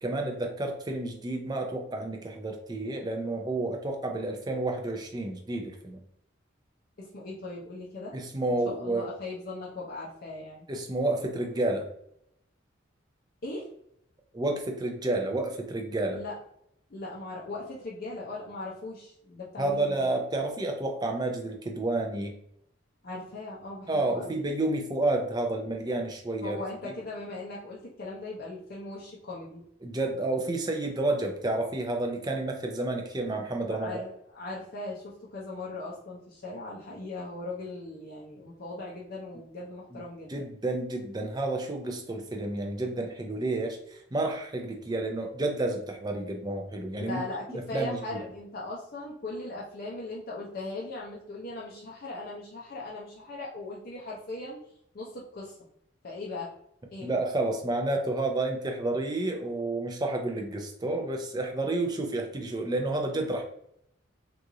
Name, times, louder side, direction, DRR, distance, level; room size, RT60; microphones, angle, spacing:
voice 1, 0.0-6.0 8.1-9.1 10.7-11.9 14.3-16.2 19.6-22.3 23.9-26.6 29.8-34.0 39.9-40.0 40.3-47.2 47.5-48.2 57.0-63.4, right 2 dB, 20° right, 3 dB, 0.5 m, -30 dB
voice 2, 7.0-8.1 8.6-10.7 13.4-13.7 16.1-16.3 16.9-20.1 23.0-24.4 26.4-29.6 33.7-40.3 47.0-54.6 54.9-55.5 56.0-56.5 56.9-57.1, left 2 dB, 50° left, -5 dB, 0.6 m, -39 dB
3.0 x 2.5 x 3.7 m, 0.72 s
head